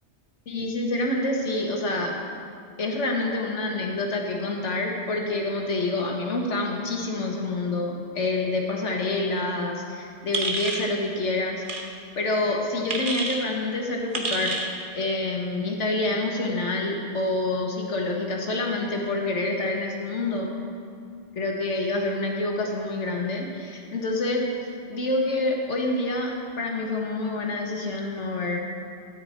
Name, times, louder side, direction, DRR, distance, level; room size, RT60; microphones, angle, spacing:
voice 1, 0.5-2.1 2.8-11.6 12.2-14.6 14.9-20.5 21.4-24.5 24.9-28.6, left 2 dB, 80° left, 0 dB, 1.7 m, -27 dB
sound 1, 10.3-10.9 11.6-11.8 12.9-13.4 14.1-14.7, right 3 dB, 45° right, 1.2 m, -28 dB
13.0 x 8.8 x 4.3 m, 2.3 s
omnidirectional pair, 1.2 m